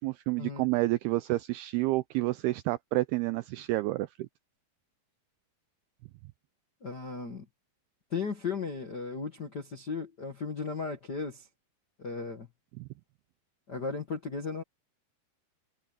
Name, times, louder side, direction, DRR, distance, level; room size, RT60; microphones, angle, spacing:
voice 1, 0.0-4.3 12.8-12.9, right 19 dB, 90° right, 2.2 m, -29 dB
voice 2, 6.8-7.4 8.1-11.5 12.0-12.5 13.7-14.6, left 4 dB, 65° left, 1.0 m, -36 dB
omnidirectional pair, 5.1 m